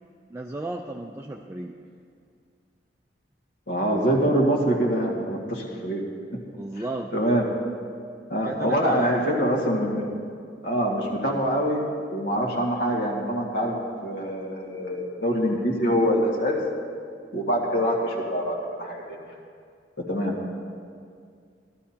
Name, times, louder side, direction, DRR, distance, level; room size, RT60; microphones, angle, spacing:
voice 1, 0.3-1.7 6.6-7.1 8.4-9.3, right 2 dB, 15° right, 1 dB, 0.4 m, -34 dB
voice 2, 3.7-6.0 6.3-6.4 7.1-7.5 8.3-10.1 10.6-13.8 14.0-16.6 17.3-19.2 20.1-20.4, equal, 65° left, -2 dB, 1.8 m, -24 dB
15.5 x 12.5 x 2.8 m, 2.2 s
head